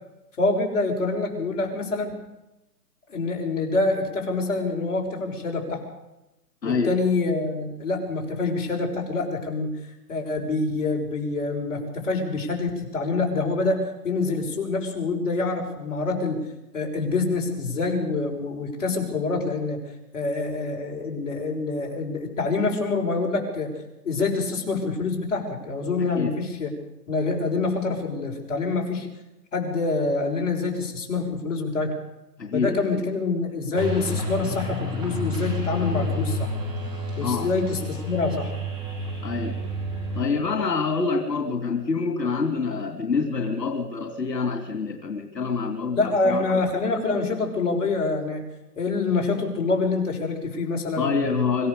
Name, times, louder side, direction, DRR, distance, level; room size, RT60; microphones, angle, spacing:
voice 1, 0.4-2.1 3.1-5.8 6.6-9.7 10.1-16.4 16.7-19.8 20.1-23.7 24.0-26.7 27.1-29.1 29.5-31.9 32.5-36.5 37.2-38.5 45.9-48.4 48.8-51.4, left 3 dB, 50° left, 0 dB, 6.2 m, -26 dB
voice 2, 6.6-7.0 26.0-26.4 32.4-32.8 37.2-37.5 39.2-39.6 40.1-46.6 51.0-51.7, left 4 dB, 85° left, 4 dB, 2.9 m, -26 dB
sound 1, 33.8-40.2, left 1 dB, 10° right, 2.8 m, -30 dB
25.5 x 15.0 x 6.8 m, 0.95 s
hypercardioid pair, 165°, 48 cm